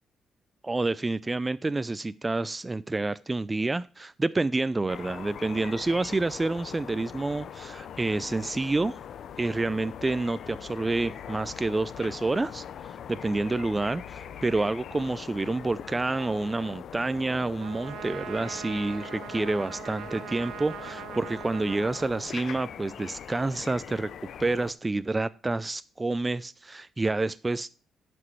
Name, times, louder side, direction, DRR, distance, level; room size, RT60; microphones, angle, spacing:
voice 1, 0.6-9.0 9.4-12.6 13.1-24.1 24.4-27.7, right 2 dB, 20° right, 15 dB, 0.3 m, -28 dB
sound 1, 4.9-24.7, left 9 dB, 65° left, 0.5 m, -42 dB
Trumpet, 17.6-22.9, right 12 dB, 80° right, 0.4 m, -41 dB
10.5 x 6.0 x 3.1 m, 0.36 s
cardioid pair, 90°, 0 cm